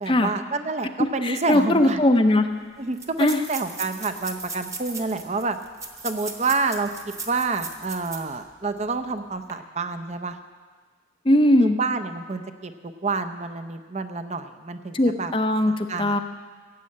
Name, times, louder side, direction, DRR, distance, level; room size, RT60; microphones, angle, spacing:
voice 1, 0.0-2.0 2.8-5.6 6.0-6.9 7.3-10.4 11.6-15.3 15.7-16.2, right 4 dB, 35° right, 9 dB, 0.6 m, -28 dB
voice 2, 1.2-2.5 3.2-3.4 11.2-11.8 14.9-16.2, left 1 dB, 25° left, 7 dB, 0.6 m, -19 dB
sound 1, 1.9-2.0 2.1-2.2 2.9-8.4 8.8-8.9 9.3-9.5, right 4 dB, 15° right, 1.0 m, -37 dB
15.0 x 7.5 x 8.5 m, 1.5 s
head